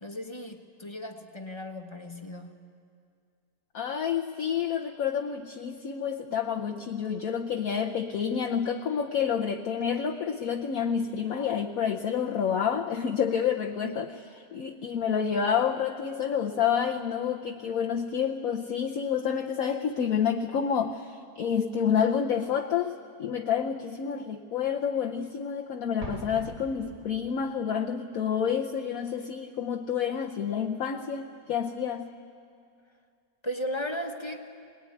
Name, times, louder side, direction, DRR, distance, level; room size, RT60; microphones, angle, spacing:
voice 1, 0.0-2.6 13.8-14.0 33.4-34.5, equal, 20° left, 5 dB, 1.1 m, -36 dB
voice 2, 3.7-14.1 14.5-32.1, left 7 dB, 60° left, 2 dB, 1.2 m, -29 dB
Explosion, 26.0-27.6, right 1 dB, 25° right, 1.4 m, -42 dB
22.0 x 20.0 x 9.7 m, 2.3 s
omnidirectional pair, 1.8 m